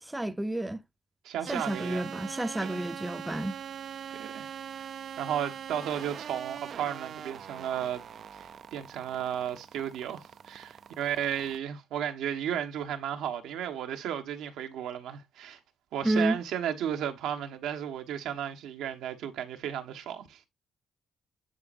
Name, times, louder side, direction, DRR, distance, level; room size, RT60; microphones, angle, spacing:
voice 1, 0.0-0.8 1.5-3.6 16.0-16.4, right 1 dB, 10° right, 0.6 m, -30 dB
voice 2, 1.2-2.1 2.6-2.8 4.1-4.5 4.7-4.9 5.2-8.0 8.3-15.6 15.9-20.4, right 9 dB, 85° right, 1.2 m, -34 dB
sound 1, 1.5-11.6, right 8 dB, 60° right, 0.4 m, -42 dB
10.5 x 4.1 x 2.5 m
cardioid pair, 90°, 0 cm